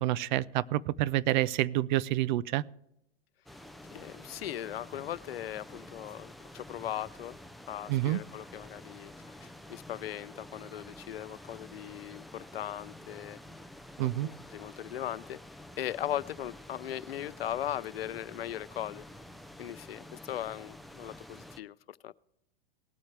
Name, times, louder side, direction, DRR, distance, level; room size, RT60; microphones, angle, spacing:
voice 1, 0.0-2.6 7.9-8.2 14.0-14.3, right 15 dB, 55° right, 21 dB, 0.5 m, -28 dB
sound 1, 3.5-21.6, left 1 dB, ahead, 0.3 m, -49 dB
voice 2, 3.9-7.4 7.7-9.1 9.4-13.4 14.0-15.4 15.8-19.1 19.6-22.1, left 12 dB, 85° left, 18 dB, 0.5 m, -39 dB
19.0 x 8.5 x 3.3 m, 0.82 s
hypercardioid pair, 115°, 29 cm